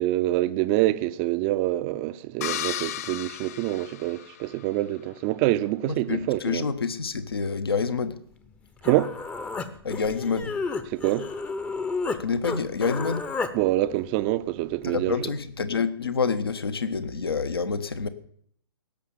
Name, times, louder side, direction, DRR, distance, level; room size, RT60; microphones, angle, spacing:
voice 1, 0.0-6.7 8.8-9.1 10.9-11.3 13.5-15.2, right 16 dB, 30° right, 0.6 m, -26 dB
sound 1, 2.4-4.6, left 12 dB, 40° left, 0.5 m, -34 dB
voice 2, 5.8-8.2 9.8-10.5 12.2-13.2 14.8-18.1, left 5 dB, 70° left, 1.3 m, -27 dB
Human voice, 8.5-8.6 8.8-12.2 12.4-13.5, left 4 dB, 10° left, 0.8 m, -31 dB
17.0 x 6.7 x 7.2 m
figure-of-eight pair, 120°, 13 cm